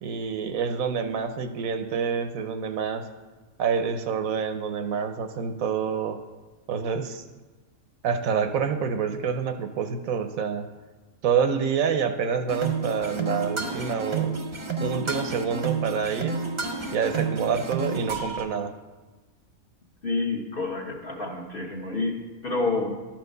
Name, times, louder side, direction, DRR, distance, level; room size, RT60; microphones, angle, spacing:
voice 1, 0.0-3.0 3.6-6.2 6.7-7.2 8.0-10.7 11.2-14.3 14.8-16.4 16.9-18.7, right 6 dB, 80° right, 8 dB, 1.1 m, -27 dB
sound 1, 12.5-18.4, right 4 dB, 30° right, 0.6 m, -30 dB
voice 2, 20.0-22.9, left 3 dB, 40° left, 0 dB, 1.4 m, -29 dB
11.5 x 4.5 x 6.6 m, 1.3 s
omnidirectional pair, 1.4 m